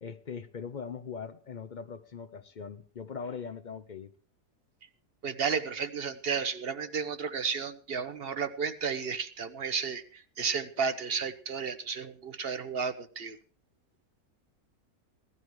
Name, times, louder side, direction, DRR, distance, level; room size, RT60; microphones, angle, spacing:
voice 1, 0.0-4.1, left 6 dB, 45° left, 12 dB, 0.6 m, -41 dB
voice 2, 5.2-13.4, right 6 dB, 45° right, 10 dB, 1.1 m, -33 dB
17.0 x 12.5 x 4.7 m, 0.42 s
omnidirectional pair, 1.6 m